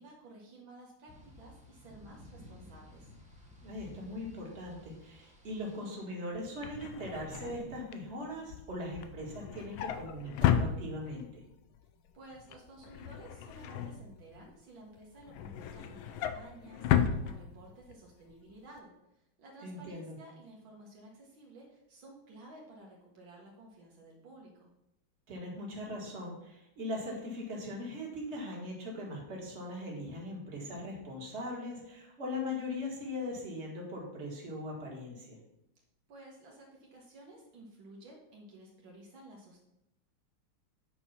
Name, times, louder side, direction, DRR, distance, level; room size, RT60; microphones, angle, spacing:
voice 1, 0.0-3.1 12.1-18.9 19.4-24.7 36.1-39.6, right 1 dB, 70° right, -2 dB, 2.0 m, -53 dB
sound 1, 1.1-6.1, left 1 dB, 5° right, 1.1 m, -55 dB
voice 2, 3.6-11.4 19.6-20.2 25.3-35.4, left 1 dB, 35° right, -2 dB, 2.1 m, -40 dB
Drawer open or close, 6.3-11.4 11.8-12.1 12.3-14.6 15.0-18.0 18.3-18.5 18.8-18.9, left 9 dB, 75° left, 1.4 m, -34 dB
8.7 x 4.6 x 5.6 m, 0.86 s
omnidirectional pair, 2.3 m